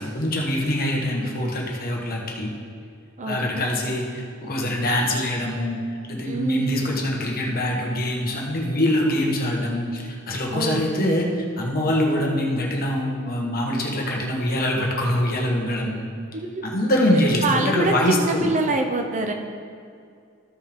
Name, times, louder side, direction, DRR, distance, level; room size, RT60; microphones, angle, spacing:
voice 1, 0.0-2.5 3.3-5.8 6.1-11.3 11.6-16.0 16.6-18.5, left 1 dB, 45° left, -1 dB, 1.3 m, -24 dB
voice 2, 3.2-3.7 6.2-6.9 10.5-11.2 16.3-16.6 17.4-19.3, right 2 dB, 35° right, 4 dB, 0.6 m, -25 dB
14.0 x 5.4 x 3.6 m, 2.2 s
head